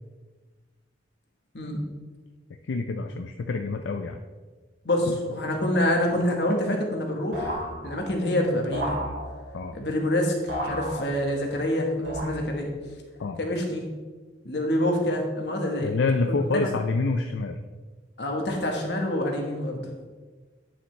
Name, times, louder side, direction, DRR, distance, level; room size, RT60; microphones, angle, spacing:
voice 1, 2.7-4.2 5.1-5.2 9.5-9.8 13.2-13.4 15.8-17.6, left 3 dB, 80° left, 5 dB, 0.4 m, -27 dB
voice 2, 4.8-9.0 9.7-12.7 13.4-13.8 14.4-16.0 16.3-16.6 18.2-19.8, left 1 dB, 60° left, 1 dB, 1.4 m, -26 dB
sound 1, 7.3-8.3 8.7-9.7 10.5-11.5 12.0-12.8, equal, 90° right, 2.7 m, -34 dB
9.5 x 6.2 x 3.3 m, 1.3 s
head